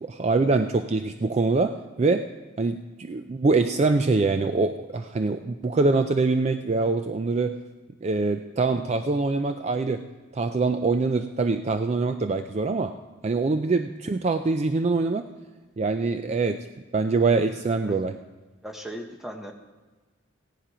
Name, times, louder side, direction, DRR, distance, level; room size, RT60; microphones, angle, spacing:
voice 1, 0.0-2.3 2.6-7.6 8.0-12.9 13.2-15.3 15.8-16.7 16.9-18.2, right 3 dB, 30° right, 8 dB, 0.3 m, -24 dB
voice 2, 17.6-18.0 18.6-19.5, equal, ahead, 3 dB, 1.0 m, -38 dB
15.5 x 10.0 x 4.9 m, 1.2 s
head